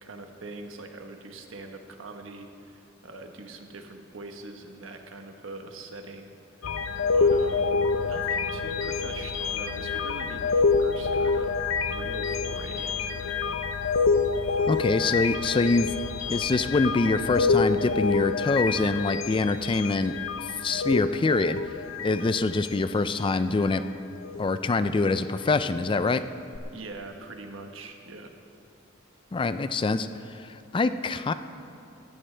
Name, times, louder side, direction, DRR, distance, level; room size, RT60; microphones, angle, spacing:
voice 1, 0.0-6.8 7.1-13.4 26.7-28.3, right 2 dB, 75° right, 4 dB, 1.2 m, -43 dB
sound 1, 6.6-23.8 24.2-24.5 26.5-26.6, left 4 dB, 80° left, 0.6 m, -27 dB
voice 2, 14.7-15.9 16.3-20.1 20.4-21.6 22.0-23.8 24.4-26.2 29.3-31.3, left 3 dB, 25° left, 12 dB, 0.3 m, -25 dB
16.5 x 14.0 x 3.3 m, 2.6 s
head